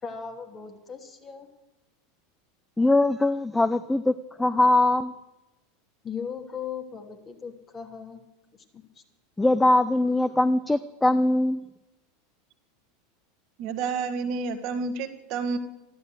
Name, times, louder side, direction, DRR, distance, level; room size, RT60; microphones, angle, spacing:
voice 1, 0.0-1.5 6.0-8.2 8.7-9.0, left 6 dB, 30° left, 3 dB, 2.9 m, -38 dB
voice 2, 2.8-5.1 9.4-11.6, left 2 dB, 10° left, 14 dB, 0.6 m, -22 dB
voice 3, 13.6-15.6, right 4 dB, 50° right, 6 dB, 1.5 m, -29 dB
13.5 x 12.0 x 8.0 m, 1.0 s
figure-of-eight pair, 85°, 0 cm